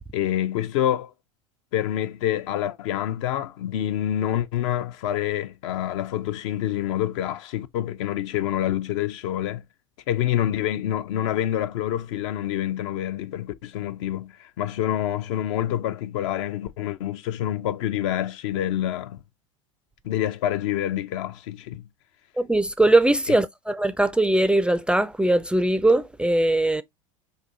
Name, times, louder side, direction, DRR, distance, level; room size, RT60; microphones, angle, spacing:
voice 1, 0.1-1.1 1.7-9.6 10.1-19.2 20.0-21.9, left 12 dB, 65° left, 0.5 m, -27 dB
voice 2, 22.4-26.8, right 2 dB, 5° right, 0.3 m, -20 dB
5.1 x 2.7 x 2.5 m
hypercardioid pair, 85°, 17 cm